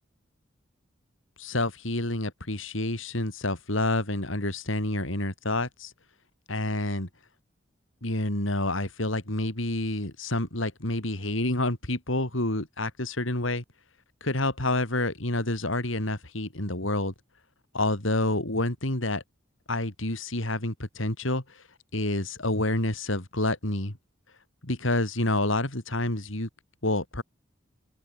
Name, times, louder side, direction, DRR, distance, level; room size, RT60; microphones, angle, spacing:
voice 1, 1.4-5.9 6.5-7.1 8.0-13.6 14.2-17.1 17.7-19.2 19.7-21.4 21.9-24.0 24.6-26.5 26.8-27.2, left 2 dB, 80° left, 4.2 m, -28 dB
head